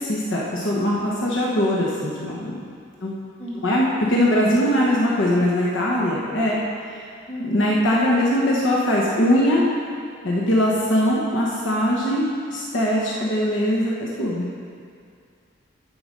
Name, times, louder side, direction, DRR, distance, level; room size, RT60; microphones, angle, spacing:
voice 1, 0.0-2.6 3.0-3.1 3.5-6.6 7.4-9.6 10.2-14.5, equal, 75° left, -4 dB, 1.2 m, -21 dB
voice 2, 3.4-3.8 7.3-7.8, equal, 35° left, -8 dB, 2.6 m, -35 dB
13.5 x 4.9 x 5.3 m, 2.3 s
head